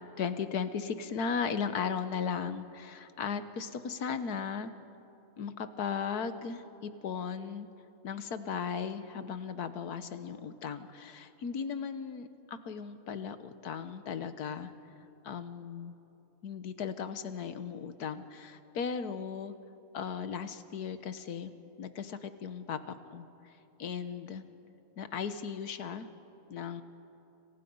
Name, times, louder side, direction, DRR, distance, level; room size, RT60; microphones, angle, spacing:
voice 1, 0.2-4.7 5.4-7.7 8.0-13.4 13.6-14.7 15.2-15.9 16.4-19.5 19.9-21.5 21.8-23.2 23.8-24.4 25.0-26.1 26.5-26.8, left 6 dB, 85° left, 11 dB, 1.6 m, -36 dB
29.5 x 27.0 x 5.5 m, 2.9 s
omnidirectional pair, 1.6 m